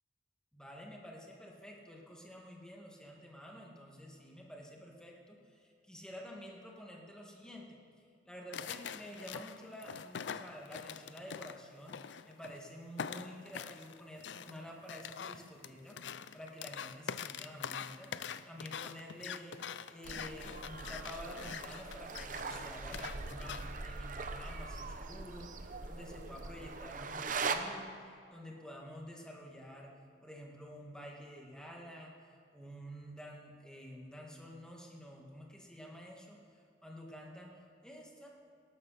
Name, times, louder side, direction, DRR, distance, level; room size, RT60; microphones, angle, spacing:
voice 1, 0.5-7.8 8.3-16.0 16.3-19.6 19.9-29.9 30.2-36.4 36.8-38.3, equal, 5° left, -2 dB, 2.0 m, -50 dB
sound 1, 8.5-12.6 13.0-23.8, left 7 dB, 85° left, 0.5 m, -44 dB
sound 2, 20.0-27.6, right 4 dB, 50° right, 0.9 m, -41 dB
19.0 x 12.0 x 4.2 m, 2.4 s
head